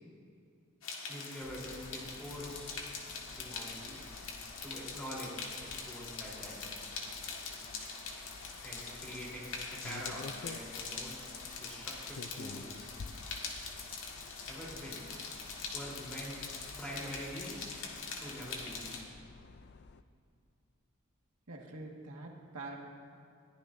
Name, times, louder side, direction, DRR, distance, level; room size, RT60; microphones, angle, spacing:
sound 1, 0.8-19.0, left 4 dB, 65° left, 1.7 m, -43 dB
voice 1, 1.1-2.8 3.4-4.0 4.6-6.6 8.6-12.9 14.5-15.1 15.7-17.6 18.2-19.1, equal, 5° left, -6 dB, 3.5 m, -45 dB
sound 2, 1.4-20.0, left 4 dB, 50° left, 0.4 m, -52 dB
voice 2, 11.3-12.0 21.5-22.8, right 2 dB, 90° right, 0 dB, 1.7 m, -47 dB
21.0 x 14.5 x 2.6 m, 2.4 s
head